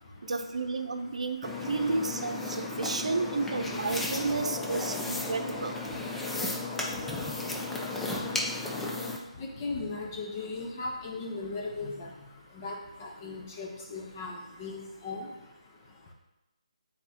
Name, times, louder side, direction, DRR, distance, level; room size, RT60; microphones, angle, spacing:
voice 1, 0.2-5.8, right 3 dB, 70° right, 6 dB, 0.7 m, -32 dB
sound 1, 1.4-9.2, left 2 dB, 5° left, 0.4 m, -34 dB
voice 2, 9.4-12.1 12.6-12.8 13.0-14.3 14.6-15.3, left 3 dB, 25° left, 0 dB, 1.0 m, -37 dB
8.2 x 4.2 x 3.0 m, 0.95 s
figure-of-eight pair, 155°, 4 cm